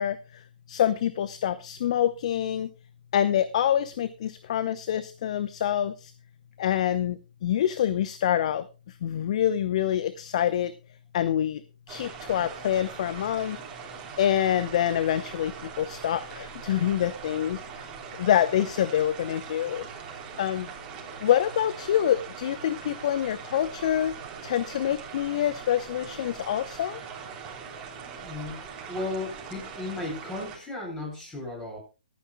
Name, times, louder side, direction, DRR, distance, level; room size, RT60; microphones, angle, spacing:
voice 1, 0.0-2.7 3.1-6.1 6.6-10.7 11.1-11.6 11.9-13.6 14.2-17.9 18.2-19.9 20.4-20.7 21.2-24.1 24.4-27.0, left 10 dB, 45° left, 14 dB, 0.7 m, -26 dB
sound 1, 11.9-30.6, right 6 dB, 20° right, 3.2 m, -41 dB
voice 2, 28.2-31.8, left 2 dB, 10° left, -1 dB, 7.8 m, -35 dB
24.5 x 9.5 x 2.2 m, 0.30 s
figure-of-eight pair, 135°, 5 cm